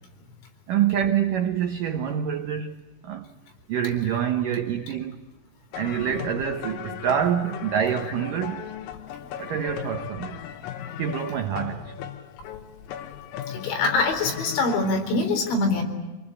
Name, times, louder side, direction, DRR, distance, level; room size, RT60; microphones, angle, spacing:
voice 1, 0.7-2.8 3.0-3.3 3.7-5.2 5.7-8.7 9.4-10.4 11.0-12.0, right 9 dB, 85° right, 1.9 m, -26 dB
sound 1, 5.7-15.0, left 10 dB, 90° left, 4.0 m, -37 dB
voice 2, 13.5-15.8, left 3 dB, 70° left, 6.3 m, -24 dB
27.0 x 20.5 x 10.0 m
omnidirectional pair, 5.6 m